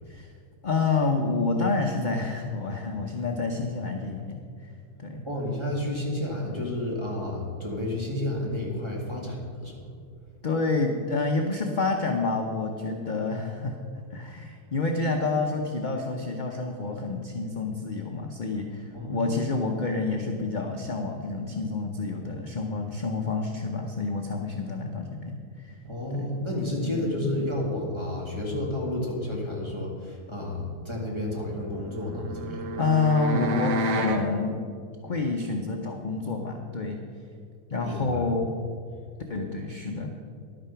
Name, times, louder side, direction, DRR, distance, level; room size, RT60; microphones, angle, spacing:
voice 1, 0.6-4.4 5.0-5.2 10.4-13.8 14.1-25.7 26.1-26.3 26.8-27.4 32.8-34.6 35.0-37.0 37.7-38.5 39.3-40.1, left 3 dB, 45° left, 2 dB, 0.6 m, -28 dB
voice 2, 5.2-9.8 18.9-19.4 25.8-32.7 37.8-38.2, left 1 dB, 15° right, -2 dB, 2.0 m, -31 dB
sound 1, 31.7-34.3, equal, 85° right, 1.6 m, -29 dB
11.0 x 9.0 x 5.7 m, 2.3 s
omnidirectional pair, 1.7 m